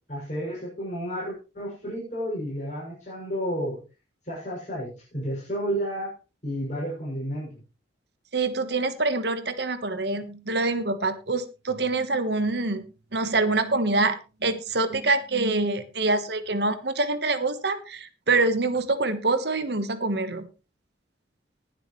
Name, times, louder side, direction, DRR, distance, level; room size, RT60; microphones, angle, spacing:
voice 1, 0.1-3.8 4.2-6.1 6.4-7.5, equal, 40° left, -6 dB, 6.8 m, -31 dB
voice 2, 8.3-12.8 13.1-14.1 14.4-20.5, right 3 dB, 60° right, 11 dB, 1.3 m, -25 dB
20.0 x 7.6 x 3.2 m, 0.31 s
head